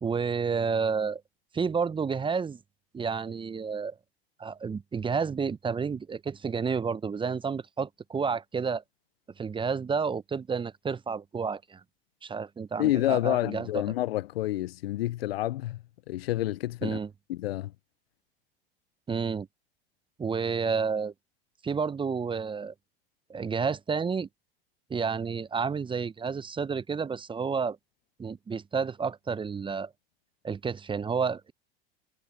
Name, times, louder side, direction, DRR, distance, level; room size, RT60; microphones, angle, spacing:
voice 1, 0.0-1.2 1.5-2.6 2.9-3.9 4.4-8.8 9.4-11.8 12.2-13.8 16.8-17.1 19.1-19.5 20.2-21.1 21.6-22.7 23.3-24.3 24.9-27.8 28.2-29.9 30.4-31.5, right 5 dB, 15° right, 0.8 m, -30 dB
voice 2, 12.8-15.8 16.1-17.0 17.3-17.7, left 15 dB, 75° left, 0.7 m, -28 dB
hypercardioid pair, 90°, 30 cm